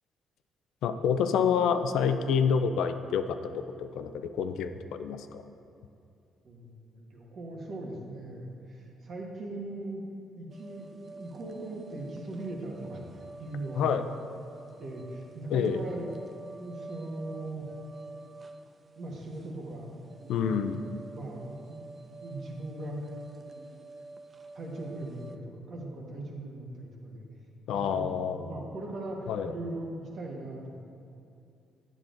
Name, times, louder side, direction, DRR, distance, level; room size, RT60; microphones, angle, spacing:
voice 1, 0.8-5.4 13.8-14.0 15.5-15.8 20.3-20.8 27.7-28.5 29.3-29.5, left 7 dB, 80° left, 9 dB, 0.3 m, -28 dB
voice 2, 6.4-14.0 14.8-16.1 16.5-17.7 18.1-18.3 19.0-19.9 20.2-20.8 21.1-21.8 22.2-23.1 23.5-23.7 24.5-27.2 27.7-28.1 28.3-30.8, right 2 dB, 55° right, -1 dB, 1.2 m, -40 dB
sound 1, 10.5-25.4, right 3 dB, 35° right, 0.4 m, -48 dB
8.5 x 7.4 x 2.5 m, 2.7 s
cardioid pair, 90°, 0 cm